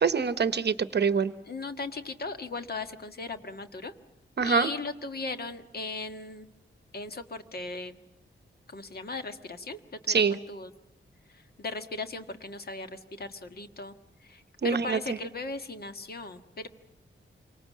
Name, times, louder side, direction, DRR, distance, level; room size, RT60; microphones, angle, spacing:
voice 1, 0.0-1.3 4.4-4.7 10.1-10.4 14.6-15.0, right 5 dB, 55° right, 13 dB, 0.9 m, -24 dB
voice 2, 1.5-3.9 4.4-6.5 6.9-8.0 8.7-10.7 11.3-13.9 14.2-16.7, left 3 dB, 50° left, 8 dB, 1.6 m, -38 dB
28.0 x 25.0 x 7.4 m, 0.90 s
wide cardioid pair, 175°, 21 cm